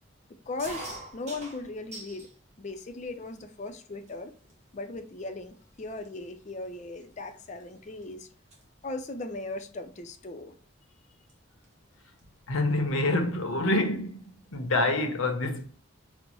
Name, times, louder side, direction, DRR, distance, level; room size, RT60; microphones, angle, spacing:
voice 1, 0.3-2.3 2.6-4.3 4.7-8.3 8.8-10.5, left 2 dB, 35° left, 0.4 m, -38 dB
sound 1, 0.6-2.3 2.8-3.4 4.1-4.2 4.4-4.8 5.5-5.6 5.8-8.0 8.3-8.6 10.0-10.2 11.3-11.4 11.6-11.7 12.0-12.9, right 2 dB, 35° right, 1.0 m, -45 dB
voice 2, 12.5-15.7, left 2 dB, 80° left, 0.8 m, -27 dB
5.2 x 2.1 x 2.9 m
head